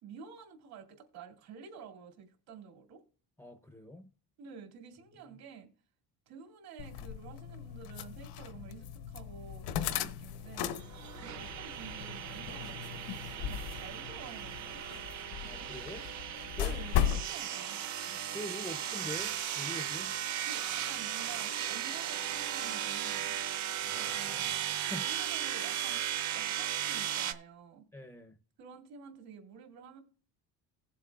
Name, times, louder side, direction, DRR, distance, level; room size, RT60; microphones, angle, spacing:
voice 1, 0.0-3.0 4.4-5.7 6.3-10.7 11.2-12.8 13.2-15.7 16.0-16.1 16.5-17.8 20.4-23.4 23.9-24.5 24.9-27.8 28.6-30.0, right 6 dB, 70° right, 2.5 m, -50 dB
voice 2, 3.4-4.1 15.4-16.0 16.6-16.8 18.1-20.1 23.8-25.1 27.9-28.4, left 1 dB, 5° left, 0.4 m, -44 dB
sound 1, 6.8-17.3, left 10 dB, 85° left, 0.8 m, -37 dB
sound 2, 10.7-27.3, right 10 dB, 45° right, 0.7 m, -36 dB
17.0 x 7.4 x 2.3 m
cardioid pair, 180°, 39 cm